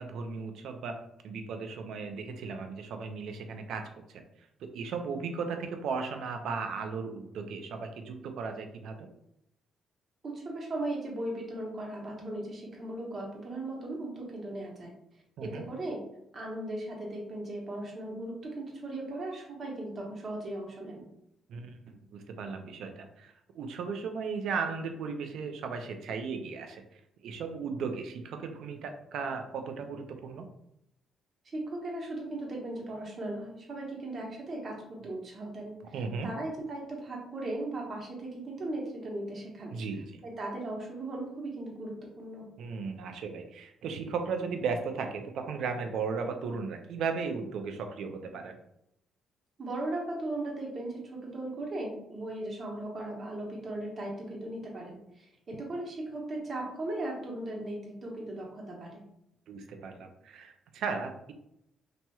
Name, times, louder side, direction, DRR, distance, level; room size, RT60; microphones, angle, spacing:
voice 1, 0.0-4.2 4.6-9.1 15.4-15.6 21.5-30.5 35.9-36.3 39.7-40.2 42.6-48.6 59.5-61.3, right 5 dB, 75° right, 6 dB, 0.4 m, -36 dB
voice 2, 10.2-14.9 15.4-16.0 16.3-21.1 31.5-36.0 36.2-39.8 40.2-42.5 49.6-59.0, right 1 dB, 40° right, -2 dB, 0.9 m, -37 dB
2.9 x 2.9 x 2.3 m, 0.79 s
cardioid pair, 90°, 0 cm